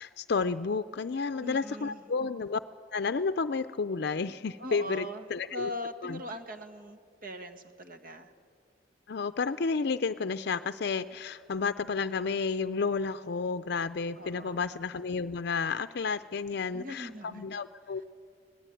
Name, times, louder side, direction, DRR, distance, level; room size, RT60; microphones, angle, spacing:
voice 1, 0.0-2.6 2.9-5.7 6.0-6.2 9.1-18.0, left 4 dB, 65° left, 11 dB, 0.5 m, -31 dB
voice 2, 1.4-2.0 4.3-4.4 4.6-8.3 14.2-14.6 16.7-17.5, left 1 dB, 50° right, 7 dB, 1.7 m, -41 dB
24.0 x 19.0 x 9.1 m, 2.2 s
head